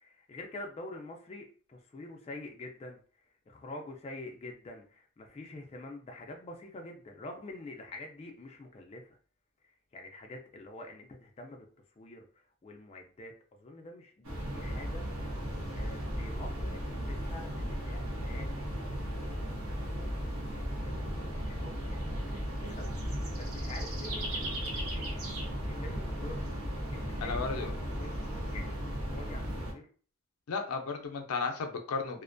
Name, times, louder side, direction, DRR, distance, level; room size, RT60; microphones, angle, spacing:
voice 1, 0.0-3.0 3.5-9.1 9.9-11.7 12.0-12.2 12.6-15.4 15.7-23.0 23.4-25.4 25.7-26.4 26.9-27.4 27.9-28.8 29.1-29.9, left 2 dB, 30° left, 2 dB, 0.3 m, -47 dB
sound 1, 14.2-29.7, equal, 80° right, 0.9 m, -36 dB
voice 2, 27.2-27.7 30.5-32.2, left 4 dB, 85° left, 4 dB, 0.5 m, -34 dB
2.4 x 2.1 x 2.5 m, 0.42 s
head